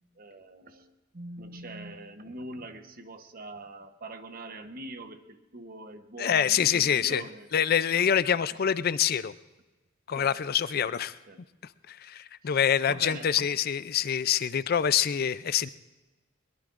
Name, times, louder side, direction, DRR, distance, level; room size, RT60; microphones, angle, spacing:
voice 1, 0.1-7.5 10.1-10.3 10.8-10.9 11.3-11.4 12.4-13.5, right 2 dB, 45° right, 8 dB, 1.0 m, -43 dB
voice 2, 6.2-7.2 7.5-9.3 10.1-11.2 11.9-15.7, left 8 dB, 50° left, 15 dB, 0.4 m, -26 dB
22.0 x 21.5 x 2.5 m, 1.1 s
head